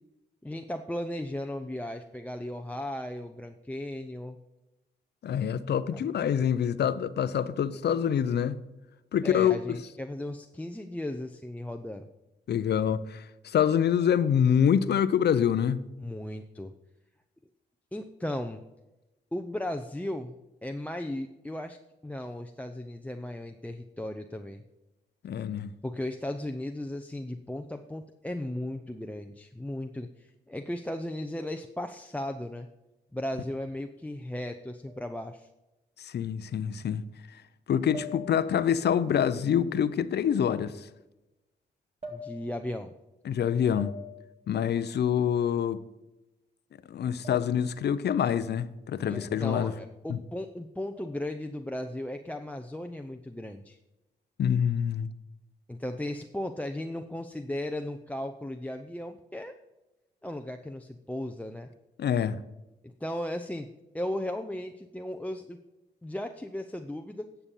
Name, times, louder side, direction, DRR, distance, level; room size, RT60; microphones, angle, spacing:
voice 1, 0.4-4.4 5.9-6.0 9.2-12.1 16.0-16.7 17.9-18.6 19.3-21.8 22.0-24.6 25.8-32.7 33.1-35.5 42.1-42.9 49.1-53.8 55.7-59.6 60.2-61.7 62.8-63.7 63.9-65.6 66.0-67.3, left 1 dB, 10° left, 0.7 m, -36 dB
voice 2, 5.2-8.6 9.1-9.8 12.5-15.9 25.2-25.7 36.0-37.0 37.3-37.4 37.7-40.9 43.2-44.0 44.5-45.8 46.9-49.7 50.1-50.2 54.4-55.1 62.0-62.4, left 8 dB, 65° left, 0.6 m, -26 dB
sound 1, 34.9-35.3 36.5-36.6 37.9-38.7 40.2-40.5 42.0-42.7 43.8-44.4 47.2-47.7 49.1-49.5 51.0-51.4, left 2 dB, 35° right, 2.2 m, -44 dB
9.7 x 7.0 x 5.5 m
cardioid pair, 60°, 18 cm